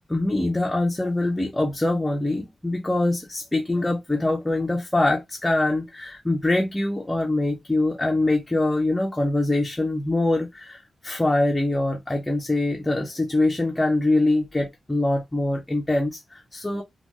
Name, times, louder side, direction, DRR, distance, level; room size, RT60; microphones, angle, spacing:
voice 1, 0.1-16.8, left 2 dB, 10° left, 0.5 m, -24 dB
3.2 x 2.2 x 2.9 m
wide cardioid pair, 160°, 0 cm